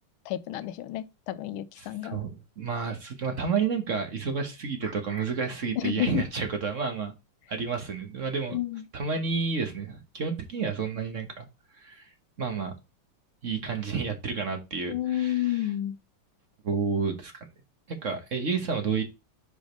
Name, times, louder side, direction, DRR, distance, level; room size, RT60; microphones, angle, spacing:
voice 1, 0.3-2.2 5.8-6.2 8.5-8.8 14.9-16.0, left 13 dB, 85° left, 1.4 m, -30 dB
voice 2, 1.8-2.3 2.6-7.1 7.5-8.6 8.9-11.5 11.8-12.0 12.4-12.7 13.4-15.7 16.6-17.5 17.9-19.0, right 5 dB, 45° right, 1.3 m, -30 dB
5.1 x 4.9 x 5.1 m
omnidirectional pair, 2.2 m